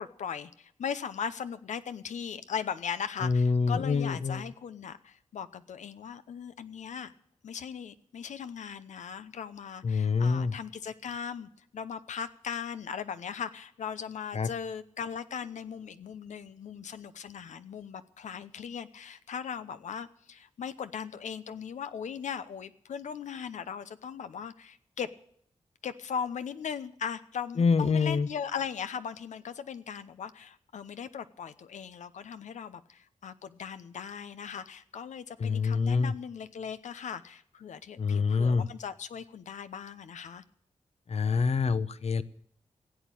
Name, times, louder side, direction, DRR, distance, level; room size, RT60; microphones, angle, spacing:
voice 1, 0.0-7.1 7.4-25.1 25.8-40.4, left 7 dB, 90° left, 12 dB, 0.8 m, -38 dB
voice 2, 3.2-4.4 9.8-10.5 14.3-14.5 27.6-28.3 35.4-36.1 38.0-38.7 41.1-42.2, left 5 dB, 60° left, 14 dB, 0.8 m, -26 dB
16.0 x 8.5 x 9.0 m, 0.65 s
cardioid pair, 50°, 12 cm